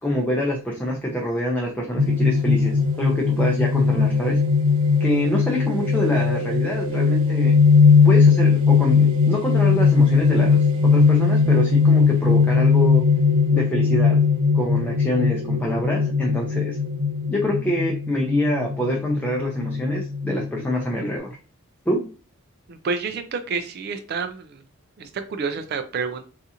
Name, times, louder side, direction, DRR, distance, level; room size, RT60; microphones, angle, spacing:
voice 1, 0.0-4.4 5.0-7.6 8.0-13.0 13.5-14.2 14.5-16.8 17.3-21.4 21.9-22.1, left 1 dB, 5° left, -1 dB, 0.5 m, -26 dB
sound 1, 2.0-21.1, left 5 dB, 65° right, 1.0 m, -19 dB
voice 2, 22.7-24.6 25.0-26.3, right 5 dB, 45° right, 8 dB, 0.3 m, -29 dB
3.7 x 2.5 x 2.8 m, 0.36 s
head